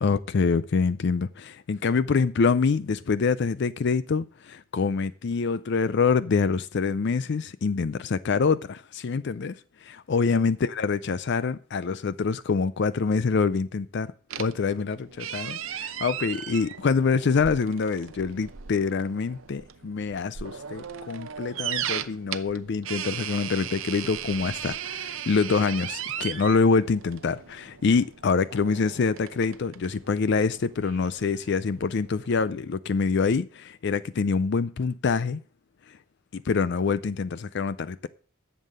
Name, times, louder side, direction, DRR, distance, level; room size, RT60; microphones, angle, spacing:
voice 1, 0.0-9.5 9.8-14.1 14.4-35.4 36.3-38.1, left 5 dB, 55° left, 0.4 m, -25 dB
sound 1, 14.3-32.4, right 9 dB, 70° right, 0.7 m, -37 dB
11.0 x 7.4 x 6.6 m
head